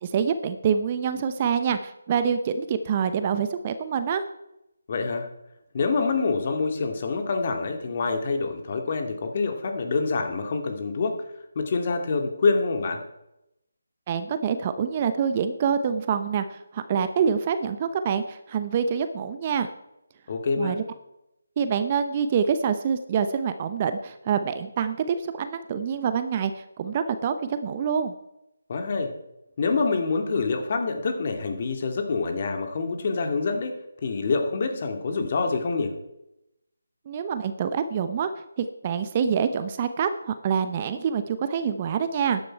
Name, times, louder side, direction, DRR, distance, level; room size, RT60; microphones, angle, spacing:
voice 1, 0.0-4.2 14.1-19.7 20.6-20.8 21.6-28.1 37.1-38.3 38.6-42.4, right 7 dB, 30° right, 10 dB, 0.8 m, -26 dB
voice 2, 4.9-5.3 5.7-11.3 11.6-13.0 20.3-20.8 28.7-29.1 29.6-33.7 34.0-36.0, left 4 dB, 40° left, 5 dB, 2.1 m, -26 dB
13.5 x 10.0 x 4.6 m, 0.86 s
figure-of-eight pair, 160°, 0 cm